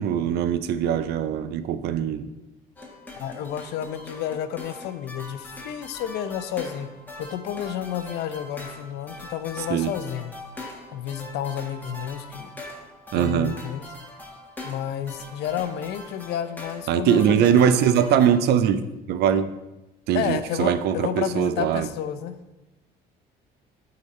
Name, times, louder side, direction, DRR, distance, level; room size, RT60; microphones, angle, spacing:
voice 1, 0.0-2.3 9.7-9.9 13.1-13.5 16.9-19.5 20.1-21.9, right 9 dB, 75° right, 11 dB, 0.5 m, -21 dB
sound 1, 2.8-18.4, left 1 dB, 10° left, 1.6 m, -42 dB
voice 2, 3.2-6.9 7.2-10.3 10.9-12.5 13.1-13.8 14.6-17.8 20.1-22.4, left 10 dB, 80° left, 11 dB, 0.6 m, -31 dB
8.3 x 4.0 x 4.2 m, 0.99 s
cardioid pair, 110°, 17 cm